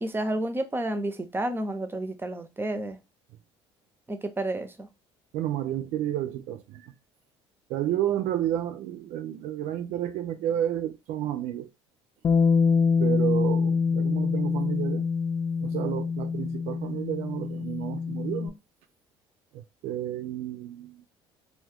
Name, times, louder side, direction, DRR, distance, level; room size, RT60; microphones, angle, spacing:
voice 1, 0.0-3.0 4.1-4.9, right 1 dB, 15° right, 0.6 m, -30 dB
voice 2, 5.3-6.9 7.7-11.7 13.0-15.1 15.6-18.6 19.5-21.0, right 11 dB, 60° right, 0.4 m, -31 dB
Bass guitar, 12.2-18.5, left 5 dB, 30° left, 0.4 m, -25 dB
2.6 x 2.3 x 3.5 m
hypercardioid pair, 65°, 13 cm